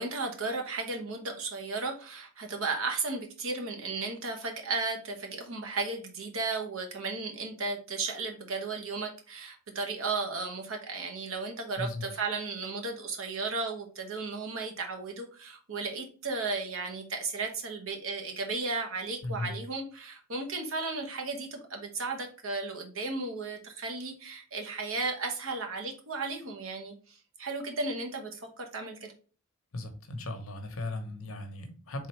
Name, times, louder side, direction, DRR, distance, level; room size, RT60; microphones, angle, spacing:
voice 1, 0.0-29.1, right 3 dB, 75° right, 3 dB, 1.0 m, -35 dB
voice 2, 19.2-19.6 29.7-32.1, left 2 dB, 80° left, 7 dB, 0.9 m, -37 dB
3.9 x 3.6 x 3.1 m, 0.39 s
head